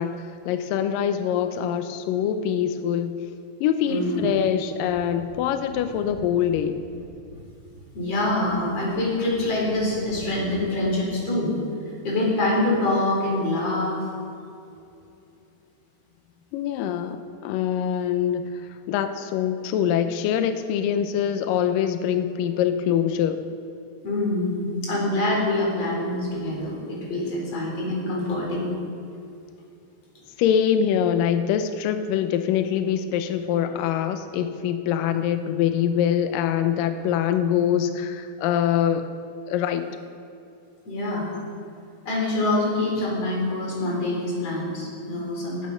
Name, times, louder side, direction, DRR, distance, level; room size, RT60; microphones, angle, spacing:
voice 1, 0.0-3.2 3.6-6.8 16.5-18.5 18.9-23.4 30.4-39.1 39.5-39.9, left 9 dB, 90° left, 9 dB, 1.9 m, -24 dB
voice 2, 3.9-4.2 7.9-11.5 12.0-14.0 24.0-28.7 40.9-41.3 42.0-45.7, left 2 dB, 40° left, -3 dB, 4.7 m, -25 dB
Breathing, 4.8-5.0 5.3-5.4 5.7-5.8 6.1-7.5 7.7-8.6 8.9-9.8 10.1-11.0, equal, 40° right, 1.0 m, -44 dB
19.5 x 9.3 x 5.7 m, 2.6 s
omnidirectional pair, 4.8 m